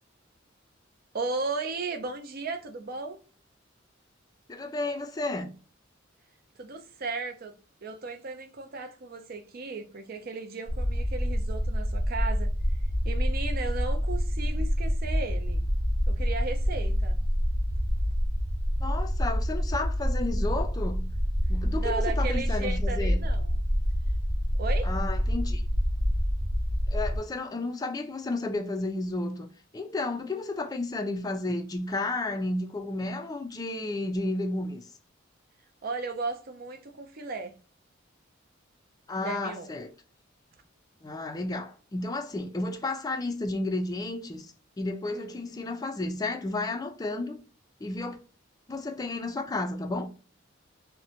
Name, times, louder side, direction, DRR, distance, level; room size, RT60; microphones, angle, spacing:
voice 1, 1.1-3.2 6.6-7.5 7.8-12.5 13.0-15.6 16.1-17.2 21.8-23.6 24.6-24.9 35.8-37.5 39.2-39.7 45.1-45.3, right 3 dB, 50° right, 0.5 m, -35 dB
voice 2, 4.5-5.5 18.8-21.1 21.5-23.2 24.8-25.6 26.9-29.5 29.7-34.9 39.1-39.9 41.0-47.4 47.8-48.2 48.7-50.1, left 2 dB, 20° left, 0.3 m, -32 dB
sound 1, 10.7-27.2, equal, 30° right, 0.9 m, -27 dB
2.6 x 2.1 x 2.7 m
head